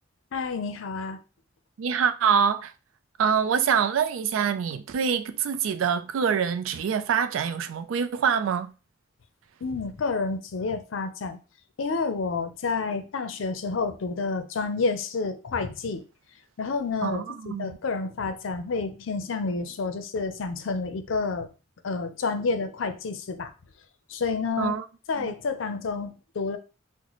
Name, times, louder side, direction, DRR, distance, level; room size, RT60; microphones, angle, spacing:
voice 1, 0.3-1.2 9.6-11.4 11.8-16.0 16.6-21.5 21.8-23.5 24.1-24.7 25.1-26.6, left 4 dB, 75° left, 0.5 m, -29 dB
voice 2, 1.8-2.7 3.2-8.7 17.0-17.8 24.6-24.8 25.2-25.3, right 7 dB, 90° right, 0.4 m, -25 dB
3.9 x 2.1 x 3.0 m
head